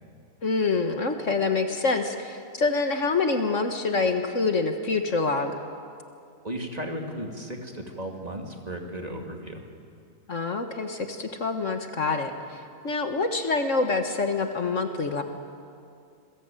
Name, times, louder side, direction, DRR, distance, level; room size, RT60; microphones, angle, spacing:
voice 1, 0.4-5.5 10.3-15.2, left 3 dB, 55° left, 6 dB, 1.7 m, -26 dB
voice 2, 6.4-9.6, right 1 dB, 25° right, 2 dB, 2.5 m, -35 dB
27.5 x 21.5 x 9.1 m, 2.4 s
omnidirectional pair, 1.6 m